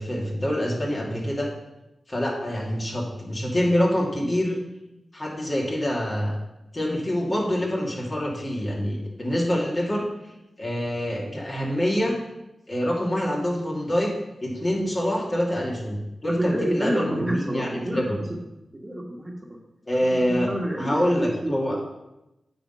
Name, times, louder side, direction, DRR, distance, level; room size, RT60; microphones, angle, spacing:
voice 1, 0.0-1.5 2.1-4.6 5.1-6.4 6.7-10.1 10.6-12.2 12.7-14.1 14.4-18.2 19.9-20.5 20.8-21.8, equal, 40° left, -3 dB, 2.5 m, -26 dB
voice 2, 16.2-18.2 18.8-19.3 20.4-21.8, right 1 dB, 25° right, 0 dB, 1.5 m, -28 dB
8.9 x 4.2 x 5.3 m, 0.94 s
cardioid pair, 45°, 0 cm